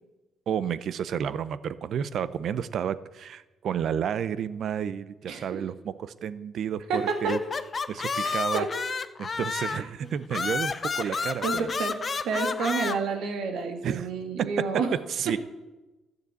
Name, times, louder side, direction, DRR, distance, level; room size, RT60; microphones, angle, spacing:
voice 1, 0.5-7.4 7.9-8.6 9.2-11.7 13.8-14.1 15.1-15.4, right 8 dB, 65° right, 16 dB, 0.6 m, -31 dB
voice 2, 6.9-7.3 8.2-8.7 9.7-9.8 11.0-12.0 12.2-15.0, right 4 dB, 85° right, 5 dB, 1.9 m, -30 dB
sound 1, 7.1-9.9 10.3-13.0, left 4 dB, 35° left, 0.6 m, -30 dB
12.5 x 6.7 x 8.4 m, 1.1 s
cardioid pair, 90°, 0 cm